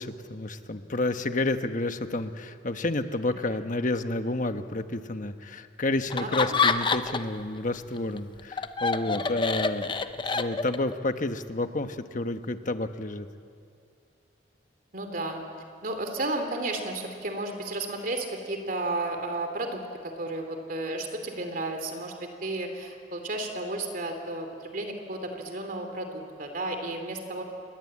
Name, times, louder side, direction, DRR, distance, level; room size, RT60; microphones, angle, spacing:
voice 1, 0.0-13.3, left 2 dB, 45° left, 8 dB, 1.2 m, -30 dB
Laughter, 6.1-7.4 7.7-10.9, left 4 dB, 25° left, 0.8 m, -27 dB
voice 2, 6.2-6.6 9.0-9.3 14.9-15.4 15.8-19.8 20.2-27.4, right 2 dB, 50° right, 5 dB, 2.9 m, -33 dB
29.0 x 22.0 x 8.7 m, 2.4 s
head